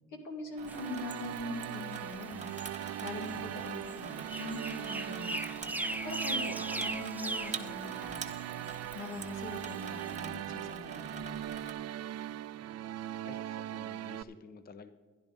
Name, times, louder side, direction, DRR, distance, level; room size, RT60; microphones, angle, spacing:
voice 1, 0.1-2.6 3.0-5.7 6.0-8.3 8.9-11.5, left 3 dB, 80° left, 4 dB, 2.3 m, -43 dB
sound 1, 0.5-14.2, right 12 dB, 55° right, 0.5 m, -40 dB
Water tap faucet / Sink (filling or washing), 0.6-11.7, right 5 dB, 25° right, 1.1 m, -46 dB
sound 2, 0.7-10.2, right 2 dB, 5° right, 0.6 m, -41 dB
voice 2, 13.2-14.9, left 4 dB, 30° left, 11 dB, 0.7 m, -51 dB
12.0 x 10.5 x 5.3 m, 1.5 s
cardioid pair, 90°, 30 cm